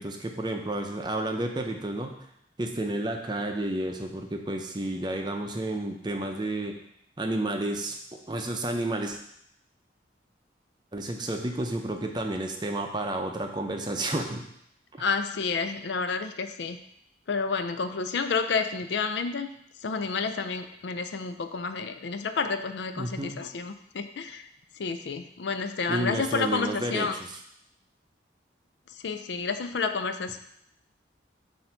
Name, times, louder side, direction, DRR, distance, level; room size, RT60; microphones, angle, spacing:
voice 1, 0.0-2.2 2.6-6.8 7.2-9.2 10.9-14.5 14.9-15.0 23.0-23.4 25.9-27.4, right 1 dB, 25° right, 3 dB, 0.6 m, -31 dB
voice 2, 15.0-16.8 17.3-19.5 19.8-24.4 24.8-27.1 29.0-30.4, left 4 dB, 70° left, 9 dB, 0.4 m, -30 dB
7.6 x 2.7 x 5.8 m, 0.75 s
head